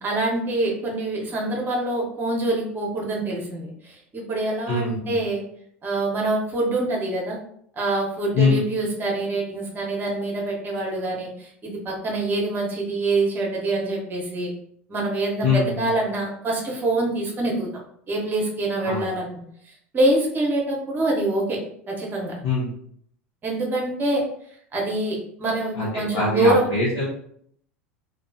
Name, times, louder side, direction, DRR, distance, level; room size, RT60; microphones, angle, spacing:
voice 1, 0.0-5.4 5.8-7.4 7.8-14.5 14.9-17.7 18.1-19.4 19.9-21.6 21.9-22.3 23.4-24.2 24.7-26.7, right 2 dB, 30° right, -1 dB, 0.9 m, -25 dB
voice 2, 4.7-5.2 8.3-8.6 15.4-15.9 18.8-19.0 22.4-22.7 25.7-27.1, left 3 dB, 60° left, -6 dB, 0.8 m, -23 dB
2.3 x 2.2 x 2.6 m, 0.67 s
figure-of-eight pair, 80°, 7 cm